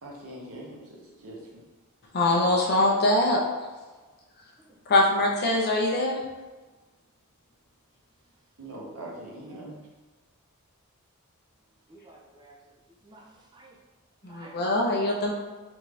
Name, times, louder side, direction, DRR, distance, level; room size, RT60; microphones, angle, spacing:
voice 1, 0.0-1.6 8.6-9.7, right 1 dB, 65° right, 0.8 m, -42 dB
voice 2, 2.1-3.4 4.9-6.2 9.6-9.7 14.2-15.3, left 1 dB, 45° left, 0.6 m, -23 dB
voice 3, 11.9-12.6 13.0-13.8 14.2-14.6, right 2 dB, 20° right, 0.4 m, -52 dB
3.5 x 2.6 x 3.2 m
head